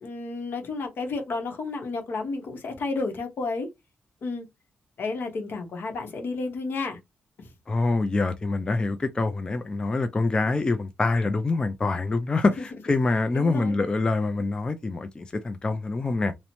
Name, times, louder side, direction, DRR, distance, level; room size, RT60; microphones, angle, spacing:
voice 1, 0.0-3.7 4.2-4.5 5.0-7.0 7.4-7.5 12.6-12.7 13.3-13.7, left 3 dB, 65° left, 0.8 m, -31 dB
voice 2, 7.7-16.3, left 3 dB, 25° left, 0.3 m, -25 dB
2.9 x 2.0 x 2.6 m
wide cardioid pair, 125°, 4 cm